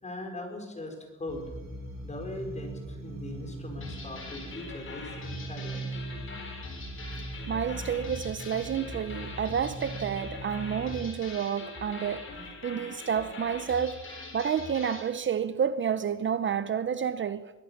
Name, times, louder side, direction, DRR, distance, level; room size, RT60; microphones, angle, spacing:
voice 1, 0.0-1.4 2.0-5.8, left 2 dB, 25° left, 5.1 m, -40 dB
sound 1, 1.3-11.0, right 2 dB, 65° right, 6.2 m, -40 dB
sound 2, 3.8-15.1, left 3 dB, 45° left, 5.2 m, -43 dB
voice 2, 7.5-12.2 12.6-14.0 14.3-17.5, right 7 dB, 40° right, 0.7 m, -30 dB
22.5 x 17.0 x 7.2 m
cardioid pair, 150°, 29 cm